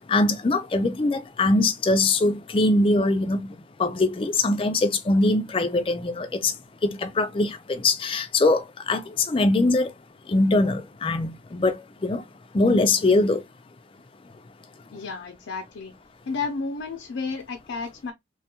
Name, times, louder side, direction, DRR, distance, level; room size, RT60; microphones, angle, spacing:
voice 1, 0.1-3.4 3.8-6.5 6.8-9.9 10.3-12.2 12.5-13.4, left 2 dB, 30° left, 0.4 m, -22 dB
voice 2, 14.9-15.9 16.3-18.1, left 4 dB, 85° left, 0.5 m, -32 dB
3.1 x 2.2 x 2.9 m
head